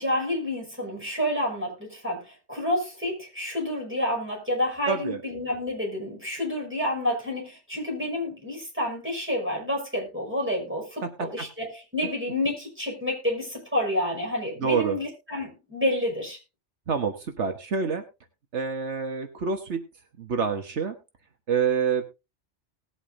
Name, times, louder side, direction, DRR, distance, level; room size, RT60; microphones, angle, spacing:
voice 1, 0.0-16.4, left 1 dB, 10° right, -2 dB, 5.4 m, -29 dB
voice 2, 4.9-5.2 11.4-11.5 14.6-15.0 16.9-18.0 18.5-19.8 20.2-20.9 21.5-22.0, right 5 dB, 75° right, 5 dB, 1.6 m, -27 dB
19.5 x 8.2 x 2.6 m, 0.26 s
omnidirectional pair, 1.2 m